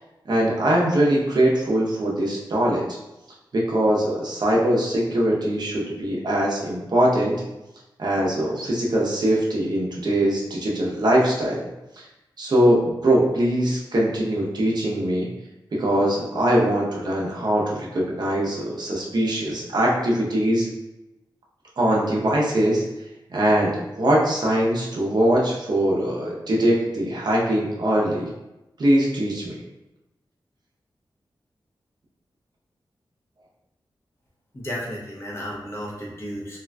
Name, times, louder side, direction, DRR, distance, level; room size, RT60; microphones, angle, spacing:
voice 1, 0.3-2.8 3.5-7.4 8.0-11.6 12.4-15.3 15.7-20.7 21.8-22.8 23.3-28.3 28.8-29.5, right 1 dB, 55° right, -4 dB, 0.7 m, -22 dB
voice 2, 34.5-36.6, equal, 30° left, -5 dB, 0.8 m, -33 dB
3.6 x 2.4 x 2.2 m, 0.97 s
wide cardioid pair, 135°, 9 cm